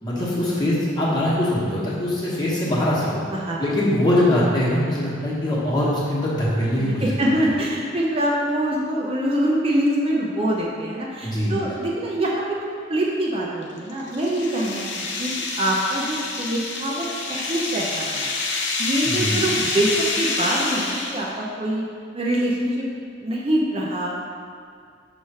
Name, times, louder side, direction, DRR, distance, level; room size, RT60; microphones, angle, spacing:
voice 1, 0.0-3.1 3.6-7.1 11.2-11.5 19.0-19.6, left 1 dB, 20° left, -7 dB, 1.2 m, -22 dB
voice 2, 3.3-3.7 6.7-18.3 18.8-19.9 20.2-21.8 22.1-22.9 23.2-24.2, right 1 dB, 30° right, -4 dB, 0.5 m, -24 dB
sound 1, 13.6-21.4, left 3 dB, 70° left, 0.7 m, -27 dB
6.0 x 3.1 x 5.5 m, 2.2 s
head